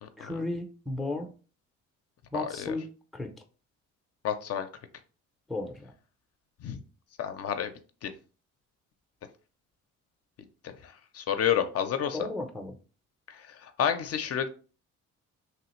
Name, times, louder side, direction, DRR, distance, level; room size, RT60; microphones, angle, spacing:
voice 1, 0.2-1.3 2.3-2.9 3.1-3.3 5.5-5.9 12.1-12.8, left 2 dB, ahead, 0.5 m, -34 dB
voice 2, 2.3-2.8 4.2-4.7 6.6-6.8 7.2-7.7 8.0-8.1 10.6-12.2 13.3-14.5, left 9 dB, 55° left, 0.4 m, -30 dB
3.0 x 2.4 x 2.9 m
cardioid pair, 90°, 30 cm